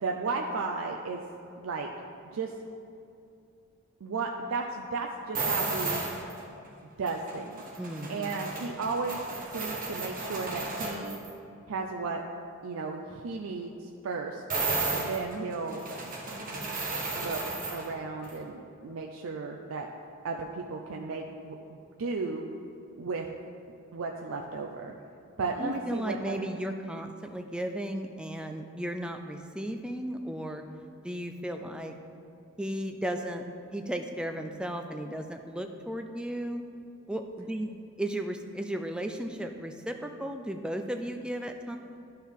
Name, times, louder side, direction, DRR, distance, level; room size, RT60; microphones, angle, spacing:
voice 1, 0.0-1.2 1.6-1.9 2.2-2.5 4.0-6.0 7.0-7.6 8.1-9.2 9.5-11.2 11.7-12.2 12.6-14.4 14.9-15.8 17.1-17.4 17.7-19.9 20.2-21.6 22.0-22.5 23.0-23.3 23.9-24.9 25.4-26.5, right 4 dB, 80° right, 1 dB, 0.5 m, -34 dB
sound 1, 5.3-6.4 7.1-11.3 14.5-17.9 18.2-18.4, right 3 dB, 40° right, 1.2 m, -33 dB
voice 2, 7.8-8.4 25.6-30.6 31.0-32.0 32.6-33.5 33.7-36.6 37.1-37.7 38.0-41.8, right 1 dB, 5° right, 5 dB, 0.3 m, -35 dB
11.5 x 4.5 x 3.6 m, 2.6 s
head